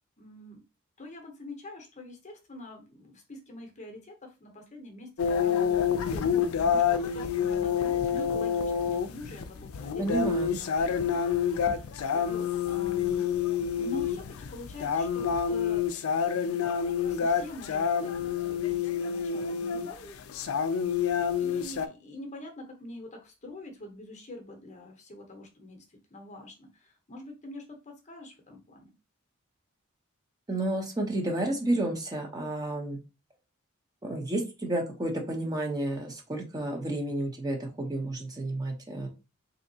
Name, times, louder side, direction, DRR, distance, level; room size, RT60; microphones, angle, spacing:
voice 1, 0.2-0.6 1.0-13.3 13.8-15.9 16.8-20.2 21.4-28.9, left 1 dB, 35° left, 3 dB, 0.7 m, -45 dB
sound 1, 5.2-21.9, left 7 dB, 85° left, 0.4 m, -28 dB
voice 2, 10.0-10.6 30.5-33.0 34.0-39.1, right 1 dB, 20° right, 2 dB, 0.7 m, -31 dB
3.4 x 2.7 x 2.7 m, 0.29 s
head